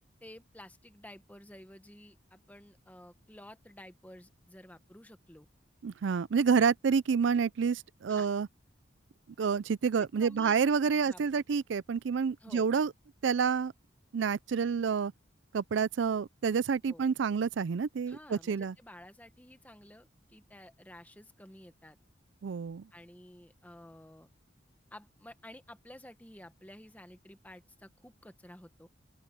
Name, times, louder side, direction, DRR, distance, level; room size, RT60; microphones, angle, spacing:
voice 1, 0.2-5.5 8.1-8.3 9.9-10.6 11.0-11.4 12.4-12.7 16.9-17.1 18.1-22.0 22.9-24.3 24.9-28.9, left 1 dB, 10° left, 1.2 m, -52 dB
voice 2, 5.8-8.5 9.4-12.9 13.2-13.7 14.1-15.1 15.5-18.7 22.4-22.9, right 6 dB, 65° right, 0.4 m, -28 dB
open air
head